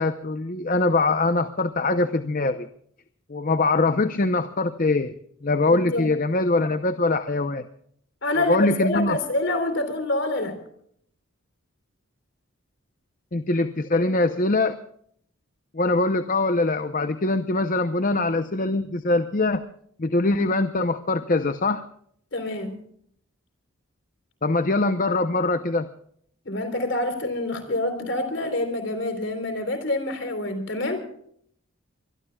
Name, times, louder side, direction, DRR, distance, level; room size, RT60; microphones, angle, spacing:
voice 1, 0.0-2.7 3.3-5.2 5.4-7.6 8.5-9.2 13.3-14.7 15.7-19.6 20.0-21.8 24.4-25.9, left 2 dB, 40° left, 10 dB, 0.7 m, -23 dB
voice 2, 5.7-6.0 8.2-10.6 22.3-22.8 26.4-31.1, left 2 dB, 60° left, 8 dB, 3.7 m, -26 dB
24.5 x 22.0 x 2.3 m, 0.65 s
head